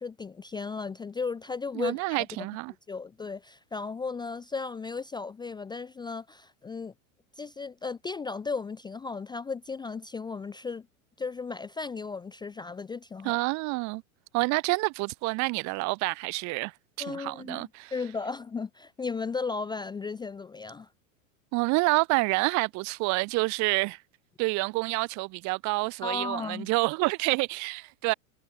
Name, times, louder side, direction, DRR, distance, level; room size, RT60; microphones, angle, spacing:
voice 1, 0.0-2.1 2.4-2.5 2.9-6.9 7.4-10.9 11.2-13.4 17.0-20.9 26.0-26.7, left 4 dB, 10° left, 0.5 m, -35 dB
voice 2, 1.7-2.7 13.2-14.0 14.3-16.7 17.0-17.9 21.5-24.0 24.4-28.1, right 26 dB, 45° right, 0.8 m, -28 dB
hypercardioid pair, 115°, 42 cm